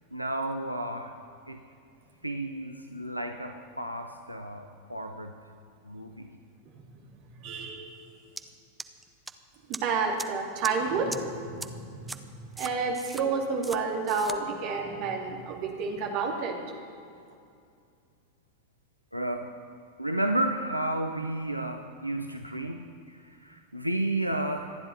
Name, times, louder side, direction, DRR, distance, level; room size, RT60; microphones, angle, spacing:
voice 1, 0.1-1.1 1.5-1.6 2.2-5.3 5.8-6.3 19.1-19.5 20.0-24.8, right 1 dB, 90° right, 5 dB, 0.7 m, -32 dB
voice 2, 7.4-7.9 9.7-12.3 12.5-16.6, right 4 dB, 45° right, 1 dB, 2.6 m, -30 dB
sound 1, 8.4-8.5 8.8-9.3 9.7-9.8 10.2-10.3 10.6-10.7 11.1-11.2 11.6-11.7 12.1-12.2 12.6-13.2 13.6-13.8 14.1-14.4, right 3 dB, 10° right, 0.7 m, -37 dB
26.5 x 10.0 x 4.2 m, 2.4 s
figure-of-eight pair, 90°, 0 cm